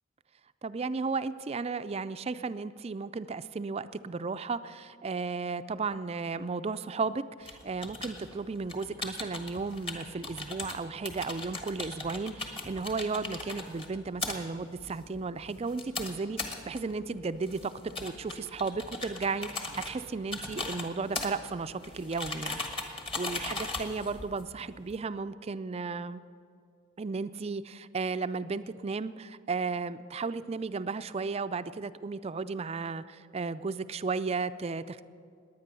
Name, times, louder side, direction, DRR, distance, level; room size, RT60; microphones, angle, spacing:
voice 1, 0.6-17.7 18.0-26.2 27.0-35.0, right 4 dB, 30° right, 13 dB, 0.4 m, -34 dB
sound 1, 7.4-25.0, left 3 dB, 25° left, 1.5 m, -39 dB
sound 2, 15.9-22.2, left 1 dB, 85° left, 5.0 m, -59 dB
20.0 x 9.2 x 6.8 m, 2.4 s
head